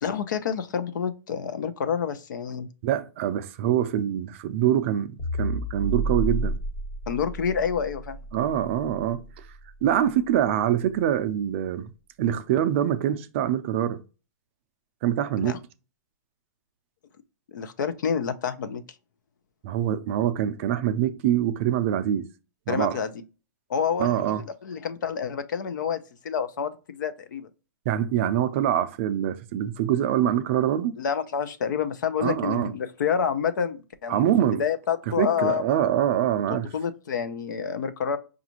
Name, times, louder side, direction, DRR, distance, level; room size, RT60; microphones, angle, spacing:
voice 1, 0.0-2.7 7.1-8.2 15.4-15.6 17.5-18.8 22.7-23.1 23.7-24.2 24.6-27.5 31.0-34.2 34.6-35.6 36.5-38.2, left 7 dB, 80° left, 0.6 m, -28 dB
voice 2, 2.8-6.6 8.3-9.5 9.8-11.9 12.2-14.0 15.0-15.6 19.6-22.3 22.7-23.0 24.0-24.4 27.9-31.0 32.2-32.7 34.1-34.6 35.2-36.7, right 10 dB, 40° right, 0.4 m, -24 dB
sound 1, 5.2-9.7, right 2 dB, 40° left, 1.2 m, -31 dB
5.1 x 2.4 x 2.9 m
hypercardioid pair, 155°, 10 cm